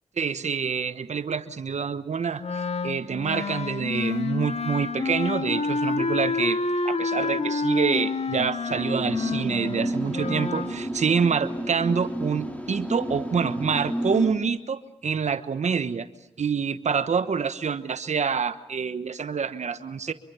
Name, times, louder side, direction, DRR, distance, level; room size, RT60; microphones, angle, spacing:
voice 1, 0.2-2.4 2.8-16.1 16.4-20.1, right 6 dB, 65° right, 13 dB, 1.1 m, -27 dB
Wind instrument woodwind instrument, 2.4-10.7, left 4 dB, 60° left, 1.8 m, -28 dB
sound 1, 8.7-14.3, right 1 dB, 10° left, 5.1 m, -31 dB
28.0 x 24.0 x 6.9 m, 0.90 s
cardioid pair, 45°, 13 cm